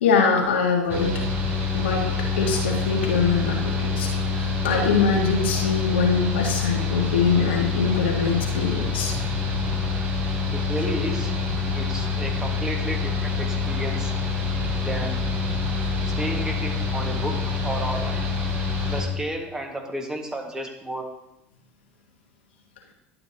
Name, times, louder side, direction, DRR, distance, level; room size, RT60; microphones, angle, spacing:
voice 1, 0.0-1.1 1.7-4.1 4.4-9.1, left 5 dB, 80° left, 0 dB, 1.8 m, -23 dB
Mechanical fan, 0.9-19.0, left 4 dB, 40° right, 3.7 m, -26 dB
voice 2, 10.5-11.3 11.8-14.1 14.8-15.2 16.0-18.3 18.9-21.1, right 1 dB, 10° right, 2 dB, 1.8 m, -32 dB
11.5 x 8.7 x 2.9 m, 0.87 s
hypercardioid pair, 75°, 6 cm